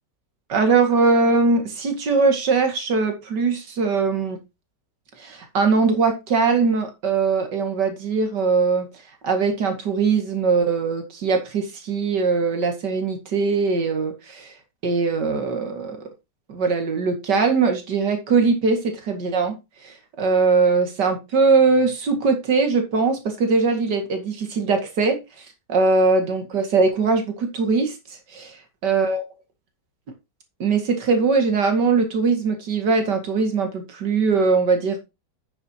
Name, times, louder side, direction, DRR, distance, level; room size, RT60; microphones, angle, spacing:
voice 1, 0.5-4.4 5.2-8.9 9.2-14.5 14.8-16.0 16.5-19.6 19.8-28.6 28.8-29.2 30.6-35.0, right 4 dB, 80° right, 2.6 m, -21 dB
9.3 x 8.8 x 2.8 m
omnidirectional pair, 1.8 m